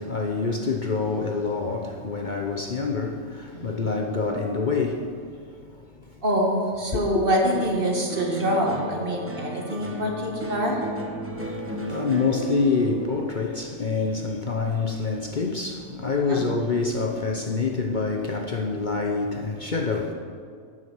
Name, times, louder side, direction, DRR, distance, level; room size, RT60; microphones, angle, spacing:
voice 1, 0.0-6.2 6.9-7.0 11.3-20.1, left 4 dB, 45° left, 0.9 m, -27 dB
voice 2, 6.2-10.8 16.3-16.5, equal, 45° right, 2.1 m, -25 dB
sound 1, 7.5-16.0 16.3-16.9, right 1 dB, 10° right, 1.2 m, -36 dB
14.0 x 8.6 x 6.2 m
omnidirectional pair, 1.3 m